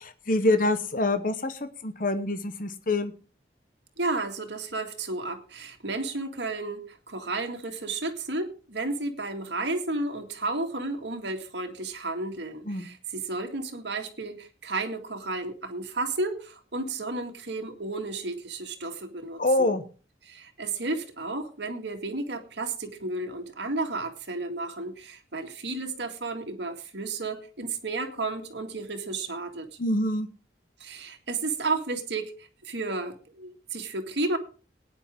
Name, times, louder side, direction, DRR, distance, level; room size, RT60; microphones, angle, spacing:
voice 1, 0.0-3.1 12.7-12.8 19.4-19.8 29.8-30.3, left 2 dB, 50° left, 10 dB, 1.0 m, -26 dB
voice 2, 4.0-19.8 20.2-29.7 30.8-34.4, right 3 dB, 70° right, 5 dB, 2.0 m, -32 dB
19.0 x 9.9 x 3.7 m, 0.37 s
head